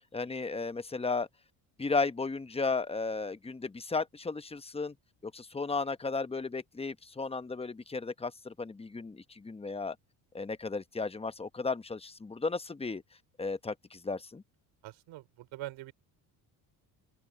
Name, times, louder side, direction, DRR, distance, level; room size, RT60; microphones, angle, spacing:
voice 1, 0.1-1.3 1.8-4.9 5.2-10.0 10.3-13.0 13.4-14.4, left 4 dB, 15° left, 0.9 m, -34 dB
voice 2, 14.8-15.9, right 15 dB, 80° right, 3.5 m, -43 dB
open air
cardioid pair, 95°, 45 cm